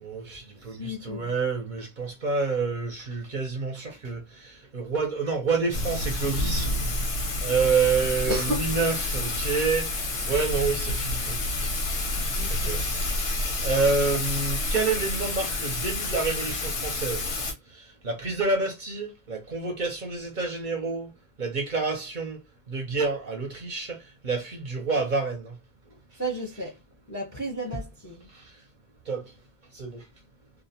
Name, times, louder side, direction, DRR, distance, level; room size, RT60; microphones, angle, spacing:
voice 1, 0.0-6.7 7.4-9.9 10.3-11.7 12.5-12.8 13.6-17.4 17.7-21.1 21.4-22.4 22.7-25.6 28.3-28.5 29.1-29.3 29.7-30.0, right 4 dB, 50° right, 0.7 m, -28 dB
voice 2, 0.7-1.4 8.3-8.7 12.3-12.8 26.2-26.8 27.1-28.3, right 1 dB, 25° left, 0.5 m, -33 dB
Thunder / Rain, 5.7-17.5, left 2 dB, 90° left, 1.0 m, -29 dB
2.4 x 2.0 x 2.7 m
omnidirectional pair, 1.1 m